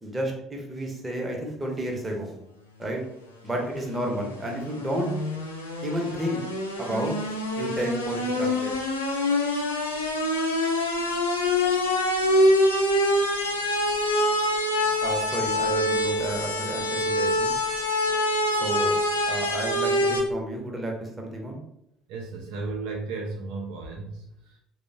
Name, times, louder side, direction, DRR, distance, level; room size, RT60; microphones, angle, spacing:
voice 1, 0.0-2.3 2.8-3.0 3.4-5.1 5.8-6.4 6.8-7.2 7.6-8.8 15.0-17.5 18.6-19.0 19.3-21.6, equal, 15° right, 0 dB, 0.7 m, -31 dB
sound 1, 3.5-20.2, left 1 dB, 85° left, 0.4 m, -25 dB
voice 2, 22.1-24.6, right 3 dB, 60° right, 0 dB, 0.3 m, -34 dB
3.3 x 2.0 x 2.6 m, 0.78 s
figure-of-eight pair, 55°, 0 cm